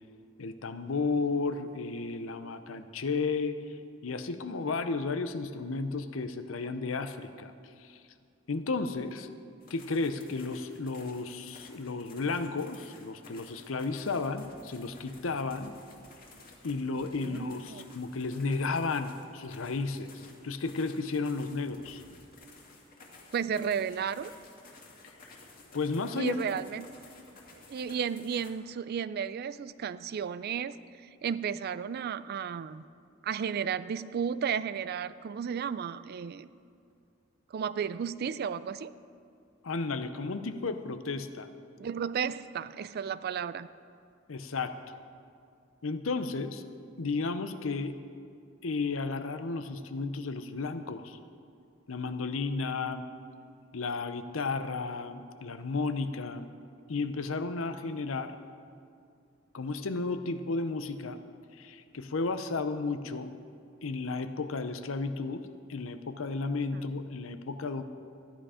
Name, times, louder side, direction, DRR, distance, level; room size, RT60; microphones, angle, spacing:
voice 1, 0.4-3.8 4.0-7.5 7.8-8.0 8.5-9.3 9.7-15.7 16.6-22.0 25.2-25.4 25.7-26.4 39.6-41.5 44.3-44.8 45.8-46.6 47.0-48.0 48.6-51.2 51.9-53.1 53.7-56.5 56.9-58.4 59.5-61.2 61.5-63.3 63.8-67.8, left 3 dB, 90° left, 10 dB, 0.7 m, -33 dB
Snowshoeing on hard packed snow., 9.6-28.5, left 3 dB, 45° left, 1.9 m, -54 dB
voice 2, 17.0-17.8 23.3-24.3 26.2-26.9 27.5-30.8 31.0-32.8 33.2-36.5 37.5-38.9 41.8-43.7 66.7-66.8, right 7 dB, 50° right, 16 dB, 0.3 m, -33 dB
13.5 x 10.0 x 5.0 m, 2.3 s
head